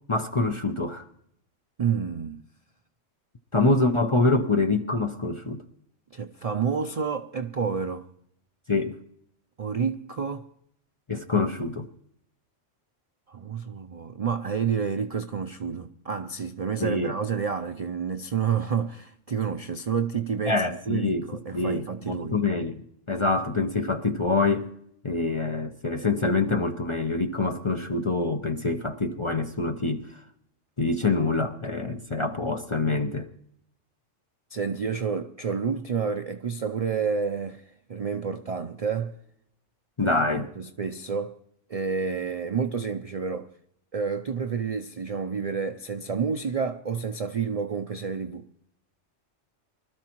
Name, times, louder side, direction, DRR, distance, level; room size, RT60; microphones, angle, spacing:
voice 1, 0.1-1.0 3.5-5.6 8.7-9.0 11.1-11.8 16.8-17.1 20.4-21.2 21.5-22.8 23.1-24.7 25.0-30.0 30.8-33.3 40.0-40.5, left 3 dB, 35° left, 0.6 m, -25 dB
voice 2, 1.8-2.4 6.1-8.1 9.6-10.5 11.3-11.5 13.3-22.3 34.5-39.1 40.3-41.4 41.7-43.5 43.9-48.4, right 6 dB, 50° right, 0.4 m, -29 dB
24.5 x 13.0 x 3.0 m
omnidirectional pair, 1.3 m